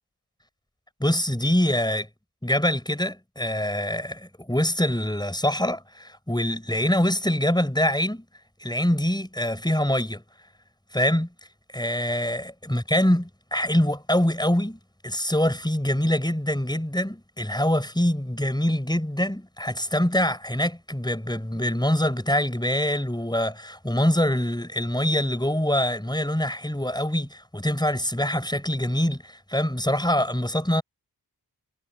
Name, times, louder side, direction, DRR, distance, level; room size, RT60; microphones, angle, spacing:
voice 1, 1.0-2.1 2.4-8.2 8.6-10.2 10.9-11.3 11.7-30.8, left 1 dB, 10° left, 7.4 m, -24 dB
cardioid pair, 40°, 41 cm